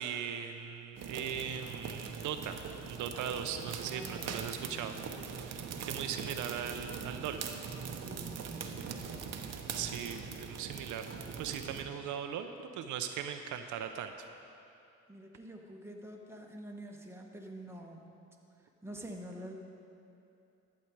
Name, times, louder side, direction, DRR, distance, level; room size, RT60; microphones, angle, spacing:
voice 1, 0.0-5.0 5.3-7.5 9.8-11.1 11.4-12.5 12.7-14.3, right 8 dB, 80° right, 7 dB, 0.6 m, -39 dB
sound 1, 1.0-11.8, right 6 dB, 55° right, 0.9 m, -42 dB
voice 2, 3.9-5.0 8.0-9.3 15.1-18.0 18.6-19.5, right 1 dB, 10° right, 0 dB, 1.3 m, -47 dB
12.0 x 7.7 x 4.6 m, 2.7 s
cardioid pair, 90°, 30 cm